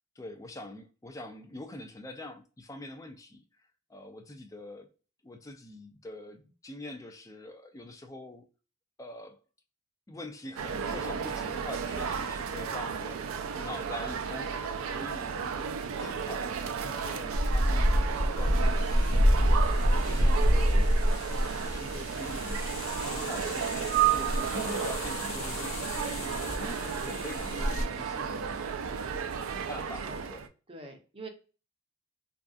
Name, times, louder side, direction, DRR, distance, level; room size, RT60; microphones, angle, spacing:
voice 1, 0.2-3.4 3.9-4.9 5.2-8.5 9.0-9.4 10.1-20.9 21.6-22.6 23.0-29.3 29.7-30.4, left 1 dB, 15° left, 0.4 m, -44 dB
sound 1, 10.6-30.5, right 7 dB, 85° right, 0.4 m, -33 dB
sound 2, 17.3-27.8, equal, 85° left, 0.6 m, -28 dB
voice 2, 29.5-30.2 30.7-31.3, right 2 dB, 25° right, 0.6 m, -46 dB
2.6 x 2.3 x 2.3 m
head